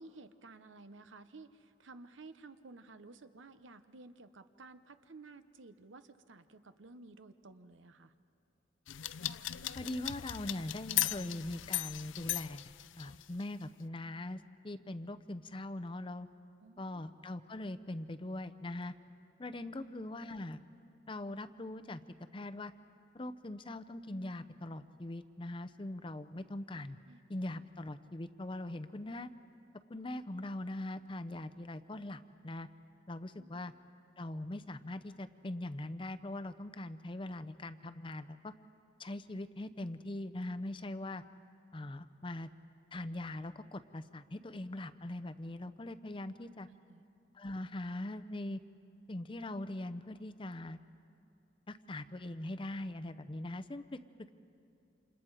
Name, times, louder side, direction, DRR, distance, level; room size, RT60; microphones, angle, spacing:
voice 1, 0.0-8.1 16.6-17.0 19.9-20.0 26.3-26.5 27.1-27.2 33.3-33.7 46.7-47.0, right 3 dB, 85° right, 11 dB, 0.9 m, -54 dB
sound 1, 8.9-13.4, left 14 dB, 85° left, 0.5 m, -37 dB
voice 2, 9.8-12.6 13.0-16.3 16.8-18.9 19.4-20.6 21.1-22.0 22.3-22.7 23.1-27.0 27.3-29.3 29.9-32.7 33.1-33.7 34.2-38.5 39.0-41.2 41.7-42.5 42.9-46.7 47.3-48.6 49.1-50.8 51.7-54.0, left 1 dB, 25° left, 11 dB, 0.6 m, -41 dB
29.0 x 27.5 x 4.8 m, 2.7 s
head